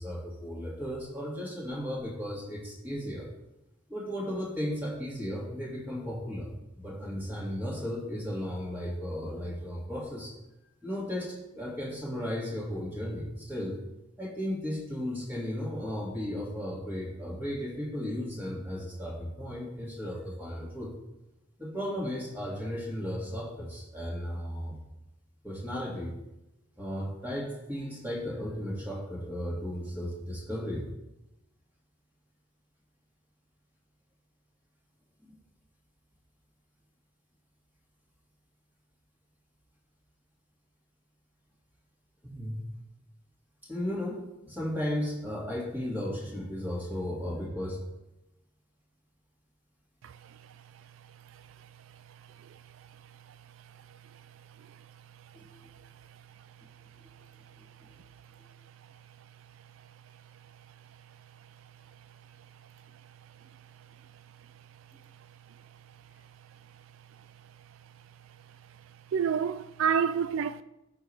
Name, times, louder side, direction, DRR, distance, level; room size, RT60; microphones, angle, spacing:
voice 1, 0.0-3.3 3.9-6.5 6.8-10.3 10.8-13.8 14.2-20.9 21.6-24.8 25.4-26.2 26.8-30.9 42.2-42.6 43.7-47.8 55.3-55.5, equal, 10° right, 2.0 m, -35 dB
voice 2, 69.1-70.6, right 7 dB, 85° right, 0.3 m, -29 dB
14.5 x 5.8 x 3.3 m
head